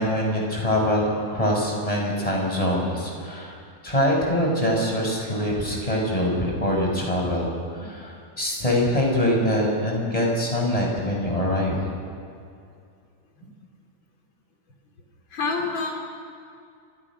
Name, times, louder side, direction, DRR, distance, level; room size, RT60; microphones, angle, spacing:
voice 1, 0.0-3.6 3.8-7.5 7.8-11.8, left 1 dB, 10° left, -1 dB, 6.1 m, -24 dB
voice 2, 15.3-16.0, left 4 dB, 40° left, 1 dB, 4.4 m, -27 dB
29.5 x 26.0 x 6.3 m, 2.3 s
omnidirectional pair, 3.5 m